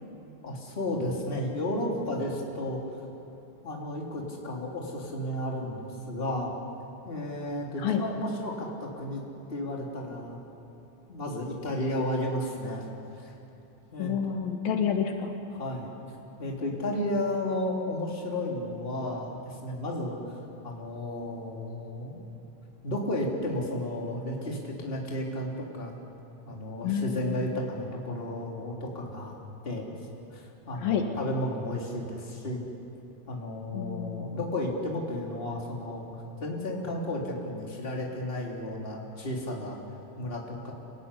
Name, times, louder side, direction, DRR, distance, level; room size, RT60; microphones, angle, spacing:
voice 1, 0.4-2.8 3.6-6.5 7.0-9.2 9.5-10.4 11.1-12.9 13.1-13.3 13.9-14.1 15.5-15.9 16.4-20.4 20.6-22.2 22.8-25.9 26.4-29.3 29.6-29.9 30.3-32.6 33.3-39.8 40.2-40.7, left 1 dB, 15° left, -1 dB, 3.2 m, -33 dB
voice 2, 14.0-15.3 26.8-27.4 30.8-31.0 33.7-34.5, left 7 dB, 85° left, 4 dB, 3.6 m, -29 dB
26.5 x 17.0 x 9.9 m, 2.9 s
omnidirectional pair, 4.0 m